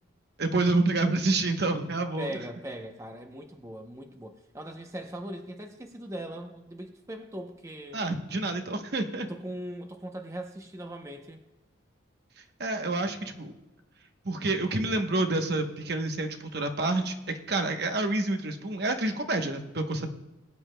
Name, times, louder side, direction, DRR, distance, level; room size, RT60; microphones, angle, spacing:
voice 1, 0.4-2.3 7.9-9.3 12.6-13.5 14.2-20.1, right 2 dB, 55° right, 5 dB, 0.9 m, -28 dB
voice 2, 2.2-8.0 9.3-11.4, right 1 dB, 15° right, 4 dB, 0.7 m, -40 dB
21.0 x 9.5 x 2.2 m, 1.0 s
head